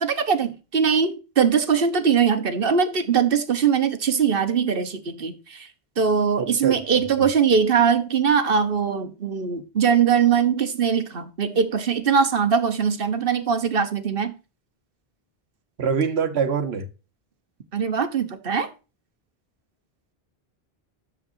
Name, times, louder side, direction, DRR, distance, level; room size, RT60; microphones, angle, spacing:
voice 1, 0.0-5.7 6.0-14.3 17.7-18.7, right 6 dB, 60° right, 1.3 m, -21 dB
voice 2, 6.4-7.3 15.8-16.9, right 6 dB, 80° right, 1.3 m, -25 dB
10.0 x 7.3 x 2.7 m
omnidirectional pair, 1.1 m